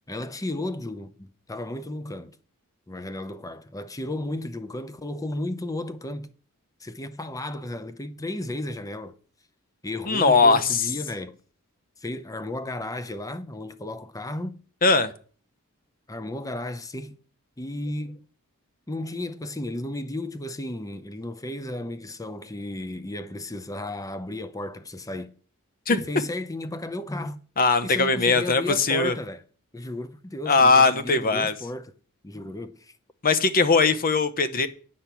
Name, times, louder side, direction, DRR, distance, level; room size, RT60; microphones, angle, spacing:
voice 1, 0.0-2.4 2.9-6.3 6.8-9.2 9.8-11.4 12.0-14.6 16.1-17.2 17.6-18.2 18.9-25.3 25.9-27.4 27.8-29.4 29.7-31.9 32.2-32.9, left 1 dB, 15° left, 0.8 m, -34 dB
voice 2, 10.1-10.8 14.8-15.1 25.9-26.0 27.6-29.1 30.5-31.5 33.2-34.7, left 4 dB, 40° left, 1.0 m, -20 dB
9.6 x 5.9 x 8.3 m
head